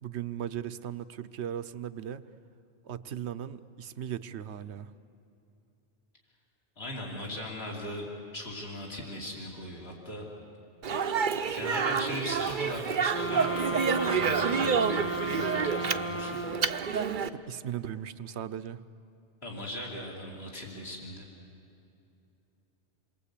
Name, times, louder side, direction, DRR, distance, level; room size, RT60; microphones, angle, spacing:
voice 1, 0.0-2.2 2.8-4.9 17.3-18.8, right 10 dB, 70° right, 12 dB, 1.0 m, -37 dB
voice 2, 6.8-8.1 8.3-10.2 11.5-16.5 19.4-21.3, left 1 dB, 60° left, -2 dB, 3.5 m, -39 dB
Speech, 10.8-17.3, right 6 dB, 50° right, 0.8 m, -29 dB
sound 1, 13.1-17.0, right 2 dB, 15° left, 0.7 m, -34 dB
28.0 x 22.0 x 8.4 m, 2.7 s
omnidirectional pair, 1.2 m